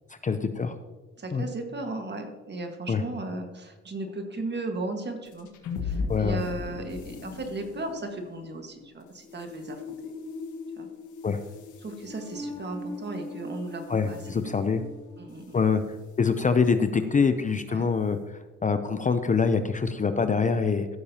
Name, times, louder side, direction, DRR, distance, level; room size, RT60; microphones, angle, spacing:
voice 1, 0.2-0.8 1.3-1.4 2.9-3.0 6.1-6.4 11.2-11.4 13.9-14.8 15.5-15.8 16.2-18.2 18.6-20.9, left 5 dB, 25° left, 9 dB, 0.5 m, -24 dB
voice 2, 1.2-5.5 5.8-9.8 10.8-10.9 11.8-14.4 15.2-15.6 17.7-17.8, right 2 dB, 35° right, 5 dB, 1.6 m, -36 dB
sound 1, 5.3-15.8, left 3 dB, 75° left, 1.6 m, -38 dB
15.5 x 6.6 x 2.8 m, 1.3 s
cardioid pair, 90°, 30 cm